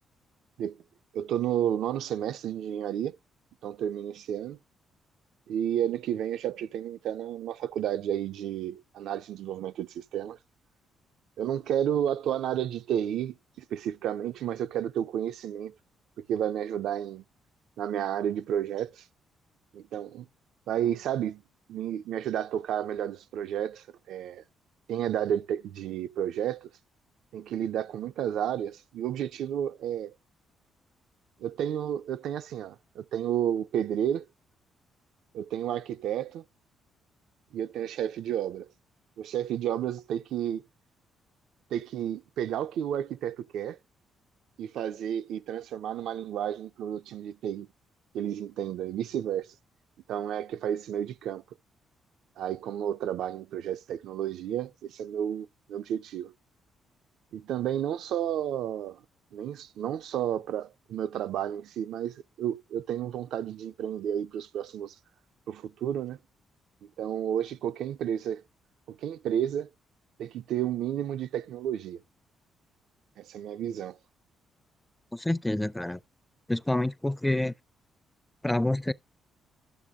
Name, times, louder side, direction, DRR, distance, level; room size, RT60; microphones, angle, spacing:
voice 1, 1.1-3.2 3.6-4.6 5.5-10.4 11.4-15.7 16.2-17.2 17.8-19.0 19.7-20.3 20.7-21.4 21.7-24.4 24.9-26.7 27.3-30.1 31.4-34.3 35.3-36.4 37.5-38.7 39.2-40.6 41.7-43.8 44.6-47.7 48.1-49.5 50.1-51.4 52.4-56.3 57.3-59.0 59.3-64.9 65.5-66.2 67.0-68.4 68.9-69.7 70.2-72.0 73.2-74.0, right 10 dB, 80° right, 0.4 m, -31 dB
voice 2, 75.1-76.0 76.5-77.5 78.4-78.9, left 1 dB, 10° left, 0.4 m, -27 dB
12.0 x 6.8 x 2.3 m
cardioid pair, 90°, 0 cm